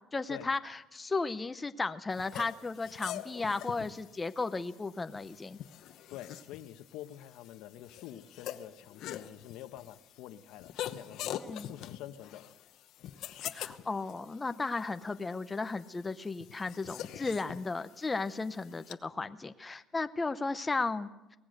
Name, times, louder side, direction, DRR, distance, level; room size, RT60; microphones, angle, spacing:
voice 1, 0.1-5.6 11.4-11.7 13.4-21.4, left 3 dB, 15° left, 10 dB, 0.6 m, -35 dB
sound 1, 2.1-18.9, left 11 dB, 65° left, 1.0 m, -45 dB
voice 2, 6.1-12.5, left 12 dB, 85° left, 11 dB, 1.1 m, -47 dB
23.0 x 18.5 x 6.6 m, 1.0 s
cardioid pair, 160°, 0 cm